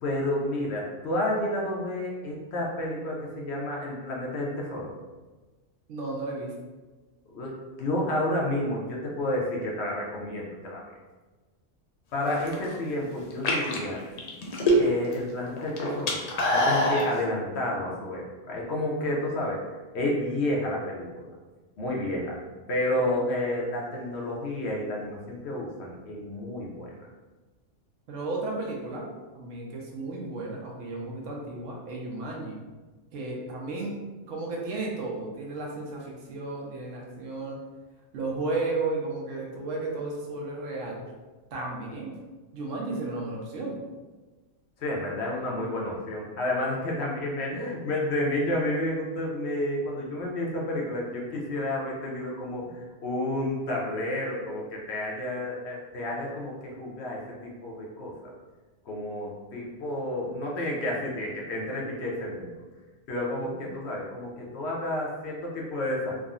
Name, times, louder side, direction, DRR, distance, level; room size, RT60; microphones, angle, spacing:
voice 1, 0.0-4.9 7.3-7.5 7.8-10.8 12.1-14.0 14.8-16.2 16.5-19.6 19.9-21.3 21.8-22.4 22.7-26.9 44.8-58.1 58.9-62.6 63.1-66.2, left 1 dB, 65° left, -3 dB, 0.8 m, -30 dB
voice 2, 5.9-6.6 12.3-12.4 23.0-23.2 28.1-29.1 29.3-32.6 33.1-34.0 34.3-37.6 38.1-41.1 41.5-42.2 42.5-43.8, right 2 dB, 80° right, -2 dB, 1.0 m, -33 dB
sound 1, 12.3-12.7 13.3-15.1 15.4-17.1, equal, 90° left, 0.3 m, -24 dB
3.5 x 2.0 x 2.4 m, 1.3 s
omnidirectional pair, 1.3 m